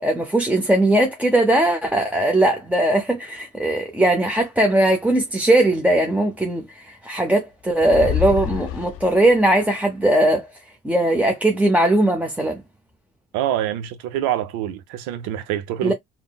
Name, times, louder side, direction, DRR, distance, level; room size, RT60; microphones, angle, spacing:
voice 1, 0.0-10.5 10.8-12.6 15.8-15.9, right 1 dB, 5° right, 0.6 m, -19 dB
sound 1, 7.8-9.4, left 11 dB, 55° left, 0.4 m, -27 dB
voice 2, 13.3-15.9, right 11 dB, 80° right, 0.6 m, -25 dB
3.6 x 2.0 x 2.3 m
supercardioid pair, 70°, 29 cm